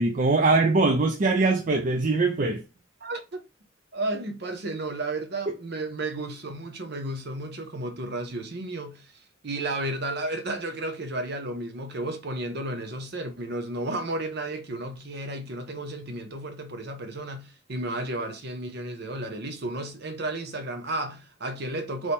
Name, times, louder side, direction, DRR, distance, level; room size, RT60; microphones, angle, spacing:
voice 1, 0.0-2.6, right 3 dB, 40° right, 0.5 m, -22 dB
voice 2, 3.0-3.4 3.9-9.1 9.4-22.1, right 2 dB, 60° right, 0.8 m, -33 dB
3.6 x 3.1 x 4.1 m
head